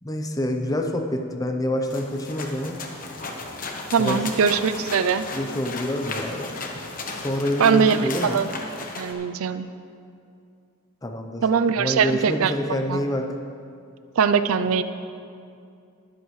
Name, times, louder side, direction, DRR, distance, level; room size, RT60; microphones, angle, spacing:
voice 1, 0.0-2.8 4.0-4.3 5.3-6.5 7.1-8.4 11.0-11.4 11.8-13.4, left 1 dB, 15° left, 4 dB, 0.7 m, -27 dB
Horsewagon horse walking slowly ext, 1.9-9.1, left 3 dB, 40° left, 1.1 m, -35 dB
voice 2, 3.9-5.2 7.6-8.5 9.0-9.7 11.4-12.5 12.9-13.0 14.2-14.8, right 6 dB, 70° right, 12 dB, 0.5 m, -21 dB
22.0 x 7.8 x 3.2 m, 2.5 s
head